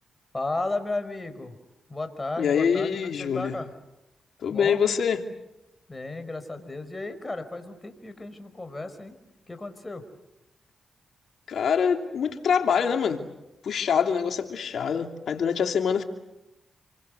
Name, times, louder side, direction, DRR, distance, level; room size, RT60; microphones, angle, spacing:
voice 1, 0.3-1.6 1.9-2.9 3.2-3.7 4.5-4.8 5.9-9.2 9.5-10.0, left 2 dB, 25° left, 8 dB, 5.4 m, -34 dB
voice 2, 2.4-3.6 4.4-5.2 11.5-13.2 13.6-16.0, left 7 dB, 75° left, 5 dB, 2.8 m, -25 dB
28.5 x 24.0 x 8.2 m, 0.91 s
supercardioid pair, 55°, 0 cm